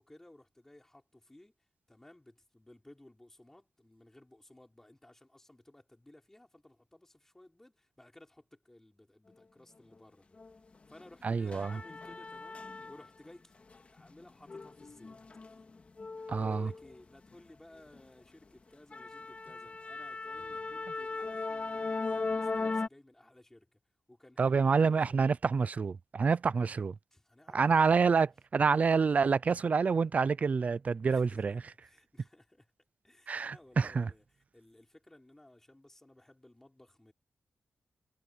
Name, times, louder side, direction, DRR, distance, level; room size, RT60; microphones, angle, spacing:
voice 1, 0.0-1.5 1.9-10.4 10.9-15.2 15.5-15.6 16.2-23.8 24.1-25.3 27.1-27.7 31.0-32.7 33.0-34.2 34.5-37.1, left 1 dB, 10° left, 5.3 m, -58 dB
sound 1, 10.4-10.5 10.9-13.3 13.6-17.4 17.8-18.0 18.4-18.5 18.9-22.9, left 3 dB, 35° left, 2.3 m, -38 dB
voice 2, 11.2-11.8 16.3-16.7 24.4-26.9 27.5-31.6 33.3-34.1, right 5 dB, 40° right, 0.5 m, -27 dB
wide cardioid pair, 160°, 4 cm